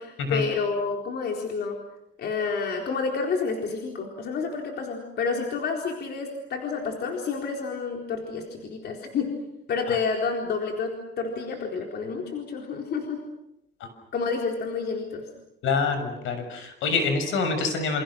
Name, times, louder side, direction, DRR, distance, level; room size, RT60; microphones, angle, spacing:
voice 1, 0.0-1.8 2.2-9.3 9.7-13.2 14.1-15.3, left 5 dB, 55° left, 2 dB, 4.2 m, -29 dB
voice 2, 15.6-18.0, left 4 dB, 80° left, 7 dB, 6.7 m, -26 dB
29.0 x 28.0 x 6.4 m, 0.83 s
cardioid pair, 165°, 20 cm